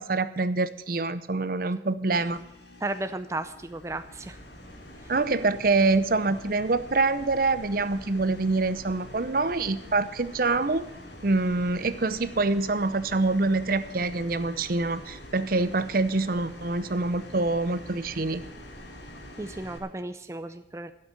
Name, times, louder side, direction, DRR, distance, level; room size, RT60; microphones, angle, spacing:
voice 1, 0.0-2.4 5.1-10.9 11.2-18.4, right 3 dB, 50° right, 13 dB, 0.7 m, -25 dB
sound 1, 2.1-19.8, equal, 75° left, 2.6 m, -45 dB
voice 2, 2.8-4.4 5.0-5.1 19.4-20.9, right 2 dB, 15° right, 9 dB, 0.4 m, -34 dB
12.0 x 7.7 x 9.4 m, 0.85 s
head